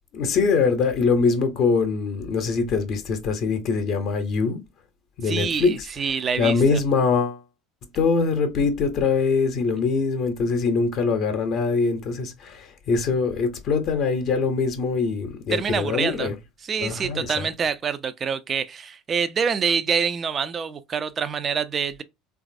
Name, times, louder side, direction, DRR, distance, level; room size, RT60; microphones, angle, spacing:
voice 1, 0.1-4.6 5.2-7.4 7.9-16.4 16.8-17.5, left 4 dB, 50° left, 0.6 m, -23 dB
voice 2, 5.2-6.8 15.5-16.3 16.6-22.0, right 6 dB, 35° right, 0.3 m, -26 dB
3.1 x 2.4 x 2.4 m
figure-of-eight pair, 65°, 0 cm